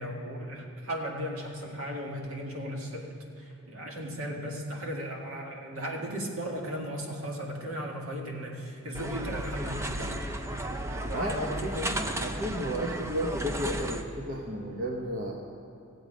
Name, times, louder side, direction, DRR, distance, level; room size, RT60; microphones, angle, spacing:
voice 1, 0.0-10.2 11.1-12.0, equal, 70° right, 0 dB, 1.8 m, -36 dB
sound 1, 8.9-14.0, right 1 dB, 10° right, 0.5 m, -34 dB
voice 2, 12.2-15.3, equal, 40° right, -1 dB, 0.9 m, -33 dB
17.0 x 7.9 x 5.1 m, 2.8 s
head